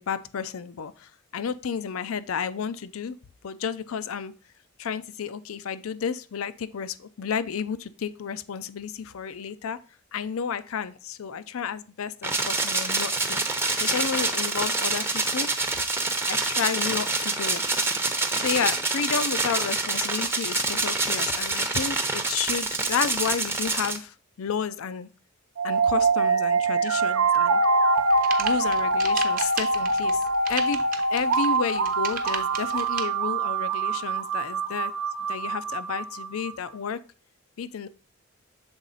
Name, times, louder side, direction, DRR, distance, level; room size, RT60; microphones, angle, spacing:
voice 1, 0.0-3.2 3.4-4.3 4.8-9.8 10.1-15.5 16.3-17.6 18.4-25.1 25.6-27.6 28.4-30.2 30.5-30.8 31.1-34.9 35.3-37.0 37.6-37.9, left 6 dB, 80° left, 15 dB, 0.5 m, -31 dB
sound 1, 12.2-24.0, right 3 dB, 10° right, 0.7 m, -26 dB
sound 2, 25.6-36.5, right 3 dB, 80° right, 0.8 m, -24 dB
sound 3, 27.9-33.0, right 6 dB, 40° right, 0.9 m, -34 dB
7.0 x 4.1 x 3.9 m, 0.36 s
head